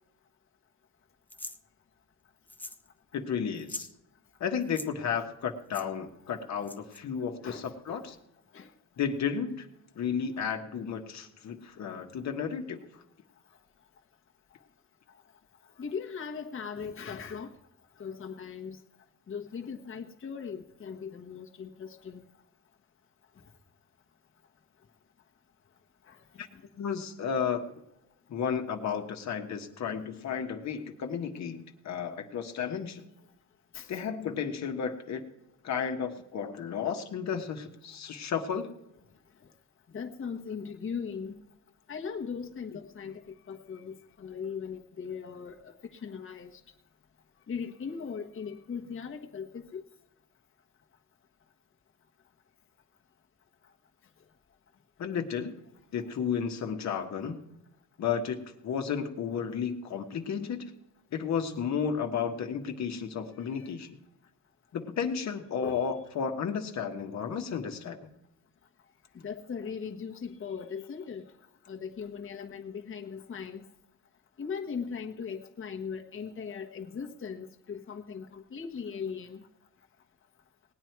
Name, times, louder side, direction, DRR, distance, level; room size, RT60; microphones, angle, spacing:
sound 1, 1.3-1.6 2.5-2.9 3.1-3.2 3.5-3.9 4.6-4.9 5.7-5.9 6.6-7.0, left 1 dB, 5° left, 0.7 m, -42 dB
voice 1, 3.1-3.9 4.4-8.2 9.0-9.7 10.0-12.8 26.4-26.5 26.8-27.7 28.3-33.0 33.9-35.2 35.6-38.7 55.0-55.5 55.9-57.4 58.0-60.6 61.1-63.9 64.7-68.0, left 7 dB, 65° left, 4 dB, 1.4 m, -33 dB
voice 2, 7.4-8.0 8.5-8.7 15.8-17.5 18.0-18.8 19.3-22.3 26.1-26.2 26.5-26.6 33.7-33.9 39.9-41.4 41.9-43.2 43.5-46.5 47.5-49.8 63.4-63.7 65.6-65.9 69.1-71.3 71.7-73.6 74.4-79.4, left 6 dB, 45° left, 2 dB, 1.3 m, -39 dB
18.5 x 9.2 x 4.6 m, 0.88 s
cardioid pair, 90°, 30 cm